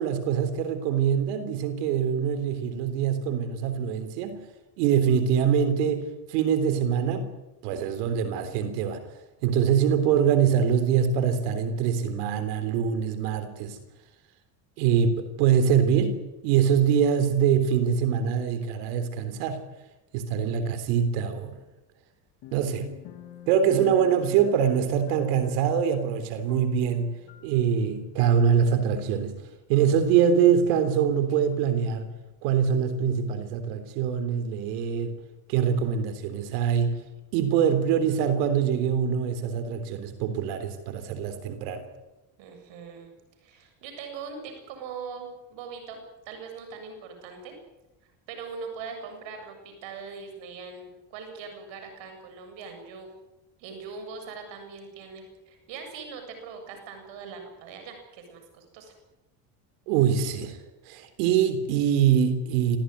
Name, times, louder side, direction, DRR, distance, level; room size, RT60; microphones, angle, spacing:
voice 1, 0.0-4.4 4.8-7.3 7.6-9.0 9.4-13.8 14.8-19.6 20.1-21.6 22.5-22.9 23.5-27.1 27.4-29.4 29.7-32.1 32.4-35.2 35.5-37.0 37.3-41.8 59.9-60.6 60.9-62.8, right 8 dB, 90° right, 10 dB, 3.6 m, -24 dB
sound 1, 22.4-27.9 28.2-28.3, left 4 dB, 65° left, 3.1 m, -45 dB
voice 2, 42.4-43.1 43.4-47.5 48.3-53.1 53.6-58.9, right 5 dB, 70° right, 6 dB, 7.8 m, -41 dB
26.0 x 15.0 x 9.5 m, 1.0 s
supercardioid pair, 95°, 46 cm